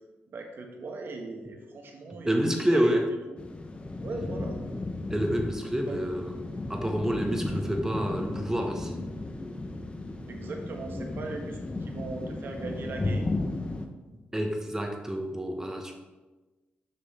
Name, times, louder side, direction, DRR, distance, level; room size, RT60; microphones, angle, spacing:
voice 1, 0.3-3.0 3.3-3.4 4.0-4.6 5.9-6.0 10.3-13.3, right 3 dB, 65° right, 3 dB, 1.2 m, -39 dB
voice 2, 2.2-3.1 5.1-6.4 6.7-9.0 14.3-15.9, equal, 10° right, 3 dB, 1.0 m, -28 dB
sound 1, 3.4-13.9, left 2 dB, 30° left, 0.8 m, -34 dB
6.5 x 5.7 x 4.2 m, 1.2 s
cardioid pair, 80°, 4 cm